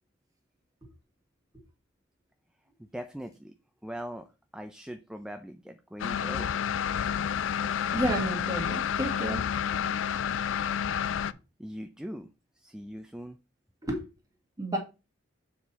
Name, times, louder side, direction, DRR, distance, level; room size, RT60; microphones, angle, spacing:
voice 1, 2.8-3.6 3.8-6.5 11.6-12.3 12.6-13.4 14.0-14.1, equal, 5° right, 0.5 m, -41 dB
sound 1, 6.0-11.3, left 8 dB, 70° left, 0.3 m, -30 dB
voice 2, 7.9-9.5 13.8-14.0 14.6-14.8, right 1 dB, 20° right, 1.8 m, -31 dB
7.1 x 4.3 x 4.1 m
head